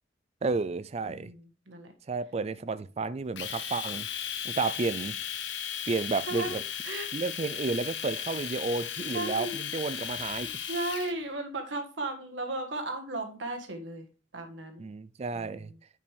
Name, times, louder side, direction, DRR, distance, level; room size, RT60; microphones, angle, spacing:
voice 1, 0.4-1.3 2.1-5.2 5.9-6.6 7.1-10.6 14.8-15.7, right 4 dB, 35° right, 0.4 m, -32 dB
voice 2, 1.0-1.9 6.3-6.5 6.8-7.1 9.1-9.7 10.4-14.1 14.3-14.8 15.3-15.7, right 2 dB, 90° right, 1.5 m, -36 dB
Domestic sounds home sounds, 3.4-11.1, left 9 dB, 75° left, 0.9 m, -36 dB
9.4 x 5.4 x 3.4 m
head